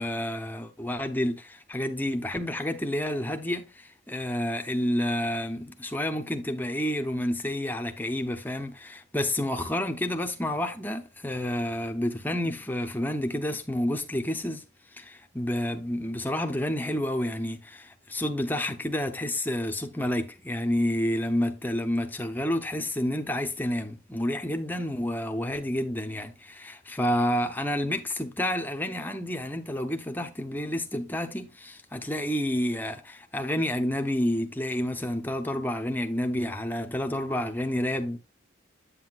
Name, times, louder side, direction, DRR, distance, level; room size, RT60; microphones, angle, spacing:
voice 1, 0.0-14.6 14.9-38.2, left 1 dB, 10° left, 0.8 m, -29 dB
8.3 x 7.8 x 2.4 m
head